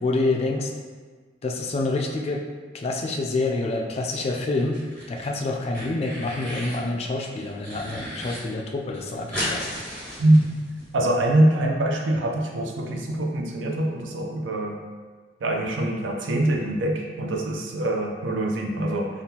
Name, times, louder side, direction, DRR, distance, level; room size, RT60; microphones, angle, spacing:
voice 1, 0.0-0.7 1.4-2.4 2.7-4.8 5.1-9.7, left 2 dB, 35° left, 1 dB, 0.3 m, -27 dB
sound 1, 4.6-5.3 5.5-6.8 7.2-8.4 8.7-8.8 8.9-10.9, equal, 5° left, 1.3 m, -34 dB
voice 2, 10.9-14.7 15.4-19.1, right 1 dB, 85° right, 0 dB, 0.5 m, -23 dB
3.5 x 2.4 x 2.8 m, 1.5 s
head